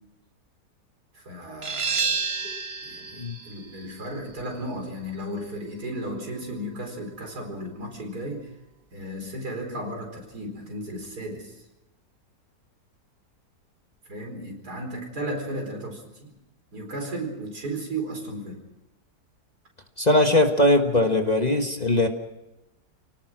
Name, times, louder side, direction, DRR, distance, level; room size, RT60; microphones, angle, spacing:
voice 1, 1.1-2.3 2.8-8.5 8.9-11.6 14.1-16.4 16.7-18.6, right 1 dB, 75° right, 3 dB, 5.1 m, -35 dB
sound 1, 1.6-7.0, right 5 dB, 45° right, 1.3 m, -32 dB
voice 2, 20.0-22.1, left 1 dB, 25° left, 5 dB, 1.4 m, -20 dB
28.5 x 18.5 x 6.2 m, 0.99 s
omnidirectional pair, 1.7 m